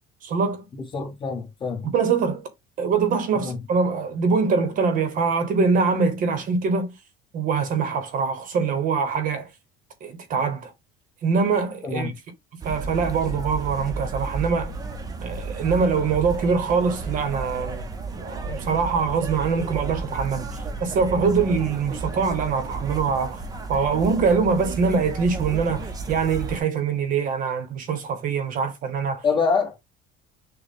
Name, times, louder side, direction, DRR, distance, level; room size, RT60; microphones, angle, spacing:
voice 1, 0.2-0.7 1.9-2.5 2.8-6.9 7.3-9.5 10.0-10.7 11.2-12.1 12.6-14.8 15.2-17.8 18.1-23.4 23.7-29.2, right 5 dB, 40° right, 0.9 m, -23 dB
voice 2, 0.9-1.9 3.3-3.6 11.8-12.1 29.2-29.8, left 5 dB, 25° left, 1.4 m, -25 dB
sound 1, 12.6-26.6, right 3 dB, 20° right, 0.7 m, -33 dB
6.4 x 2.2 x 3.6 m
cardioid pair, 155°, 20 cm